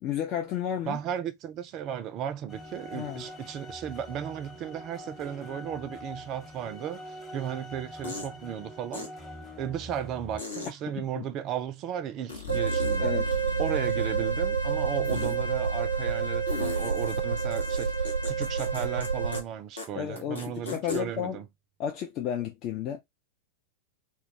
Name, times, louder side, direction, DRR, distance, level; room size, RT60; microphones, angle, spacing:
voice 1, 0.0-1.0 2.9-3.2 11.0-11.2 12.5-12.6 13.0-13.4 20.0-21.4 21.8-23.0, left 9 dB, 40° left, 0.4 m, -32 dB
voice 2, 0.8-9.1 9.6-13.1 13.6-21.4, right 9 dB, 35° right, 0.4 m, -35 dB
sound 1, 2.5-10.4, equal, 20° left, 0.9 m, -44 dB
sound 2, 7.1-7.2 8.0-8.3 8.9-9.1 10.4-10.7 12.3-13.0 13.2-14.2 15.0-15.4 16.5-19.1 19.3-19.4 19.8-19.9 20.2-21.0, left 3 dB, 75° left, 0.9 m, -38 dB
sound 3, 12.5-19.4, right 5 dB, 85° right, 0.6 m, -28 dB
2.3 x 2.2 x 2.7 m
figure-of-eight pair, 90°, 0 cm